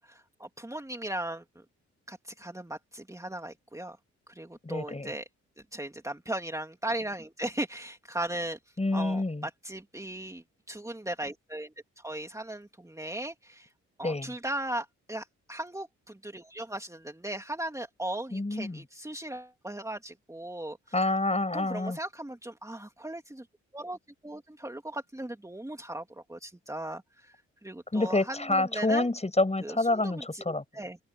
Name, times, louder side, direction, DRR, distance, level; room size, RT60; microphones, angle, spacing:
voice 1, 0.0-1.4 2.1-4.0 4.3-5.3 5.7-8.6 8.9-13.7 14.0-20.8 21.5-23.4 23.7-24.0 24.2-26.0 26.3-27.3 27.6-29.1 29.6-31.0, right 1 dB, 10° right, 3.0 m, -37 dB
voice 2, 4.6-5.1 8.8-9.5 14.0-14.3 18.3-18.8 20.9-22.0 27.9-30.6, left 2 dB, 20° left, 7.0 m, -28 dB
open air
supercardioid pair, 50°, 30 cm